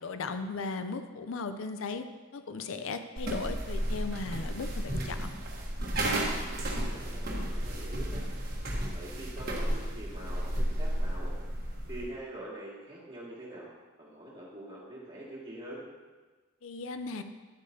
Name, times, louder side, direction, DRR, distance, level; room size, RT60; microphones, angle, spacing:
voice 1, 0.0-2.0 2.3-5.3 16.6-17.2, left 4 dB, 75° left, 8 dB, 0.5 m, -37 dB
sound 1, 3.2-12.1, right 1 dB, 45° right, 1.3 m, -33 dB
voice 2, 6.7-8.2 8.9-11.3 11.9-13.7 14.0-15.8, right 1 dB, 25° right, -6 dB, 2.2 m, -44 dB
10.5 x 8.3 x 2.8 m, 1.3 s
head